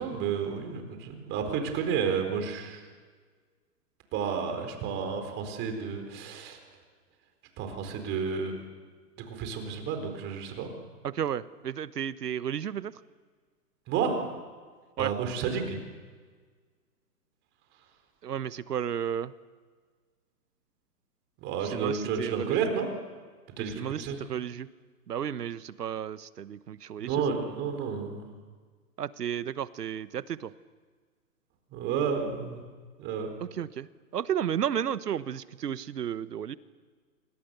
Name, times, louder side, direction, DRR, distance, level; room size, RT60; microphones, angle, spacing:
voice 1, 0.0-2.8 4.1-6.6 7.6-8.6 9.3-10.7 13.9-14.3 15.0-15.8 21.4-22.9 23.6-24.2 27.0-28.2 31.7-32.6 33.0-33.3, right 6 dB, 25° right, 5 dB, 4.2 m, -31 dB
voice 2, 11.0-12.9 15.0-15.1 18.2-19.3 21.7-22.6 23.6-24.7 25.1-27.2 29.0-30.5 33.4-33.9 34.1-36.6, right 9 dB, 80° right, 16 dB, 1.2 m, -33 dB
27.0 x 25.0 x 6.8 m, 1.5 s
hypercardioid pair, 145°, 47 cm